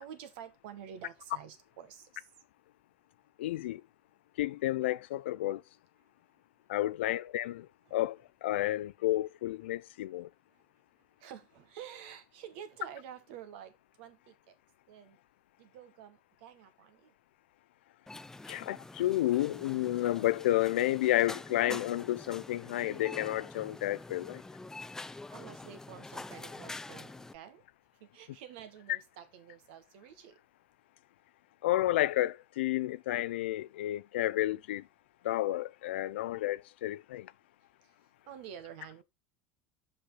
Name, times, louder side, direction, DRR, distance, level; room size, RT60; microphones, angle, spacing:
voice 1, 0.0-2.3 7.9-8.0 10.5-10.6 11.2-14.6 14.9-15.2 15.6-17.1 25.0-27.6 28.0-30.4 38.2-39.0, right 9 dB, 75° right, 1.6 m, -49 dB
voice 2, 3.4-3.8 4.4-5.6 6.7-10.3 18.5-24.4 31.6-34.8 35.2-37.3, left 15 dB, 85° left, 0.4 m, -31 dB
sound 1, 18.1-27.4, left 2 dB, 10° left, 0.4 m, -46 dB
5.6 x 5.5 x 5.5 m
hypercardioid pair, 95°, 6 cm